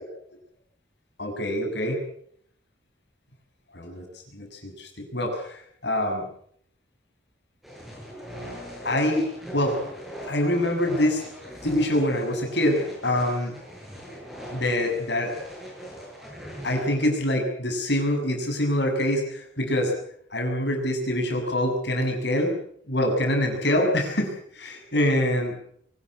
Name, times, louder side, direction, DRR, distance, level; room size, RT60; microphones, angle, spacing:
voice 1, 1.2-2.0 3.7-6.3 8.8-9.3 9.5-9.8 10.2-11.2 11.6-13.5 14.5-15.3 16.6-20.0 20.3-22.6 22.9-25.6, left 1 dB, 60° left, 4 dB, 6.9 m, -25 dB
sound 1, 7.6-17.1, equal, ahead, 6.9 m, -40 dB
24.0 x 15.5 x 8.6 m, 0.65 s
head